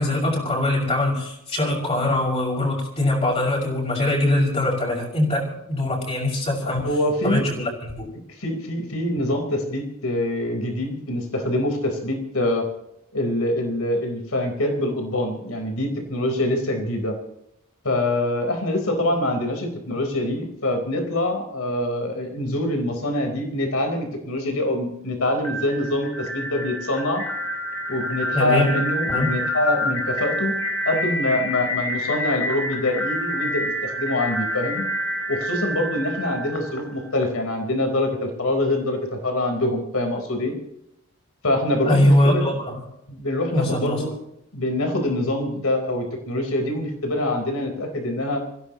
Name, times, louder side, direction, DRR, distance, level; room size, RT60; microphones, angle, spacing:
voice 1, 0.0-5.4 5.7-6.8 7.2-8.1 28.3-28.7 29.1-29.3 41.8-42.5 43.5-44.0, left 1 dB, 30° left, -3 dB, 6.4 m, -22 dB
voice 2, 6.6-7.5 8.4-12.7 13.1-17.2 17.8-27.2 27.9-30.5 30.9-34.8 35.3-40.5 41.4-42.5 43.1-44.1 44.5-48.4, left 1 dB, 70° left, 4 dB, 4.3 m, -25 dB
sound 1, 25.4-37.2, equal, 90° left, 5.4 m, -28 dB
26.5 x 16.5 x 3.1 m, 0.81 s
head